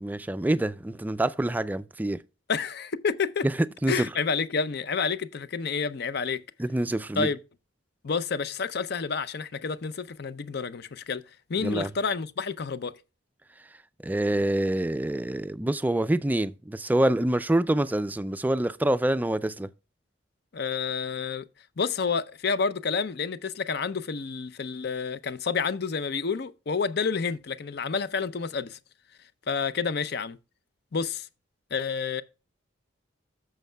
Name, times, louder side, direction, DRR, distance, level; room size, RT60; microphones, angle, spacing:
voice 1, 0.0-2.2 3.8-4.1 6.6-7.3 11.6-11.9 14.0-19.7, right 1 dB, 10° right, 0.3 m, -26 dB
voice 2, 2.5-3.5 3.9-6.4 7.2-7.4 8.0-11.2 11.5-12.9 20.5-21.4 21.8-28.8 29.5-30.4 30.9-31.3 31.7-32.2, left 5 dB, 55° left, 0.5 m, -29 dB
14.5 x 6.5 x 2.2 m
head